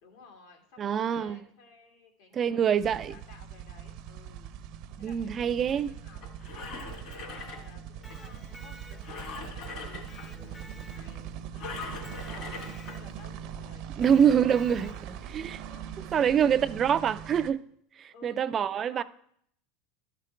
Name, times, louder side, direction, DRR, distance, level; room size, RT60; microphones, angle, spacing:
voice 1, 0.0-4.5 5.0-6.2 6.9-15.0 15.5-17.1 18.1-19.0, left 4 dB, 75° left, 2.1 m, -55 dB
voice 2, 0.8-1.4 2.3-3.1 5.0-5.9 14.0-14.9 15.3-15.6 16.1-17.7 18.0-19.0, right 8 dB, 30° right, 0.3 m, -25 dB
sound 1, 2.8-17.5, right 9 dB, 55° right, 0.7 m, -42 dB
Engine, 6.2-8.2 9.0-10.3 11.6-13.0 13.6-13.7, left 4 dB, 55° left, 2.4 m, -41 dB
Electric guitar, 7.9-9.4 10.1-11.5 12.0-13.3 14.0-15.2, left 1 dB, 20° left, 0.6 m, -52 dB
12.5 x 4.9 x 4.5 m
supercardioid pair, 125°, 0 cm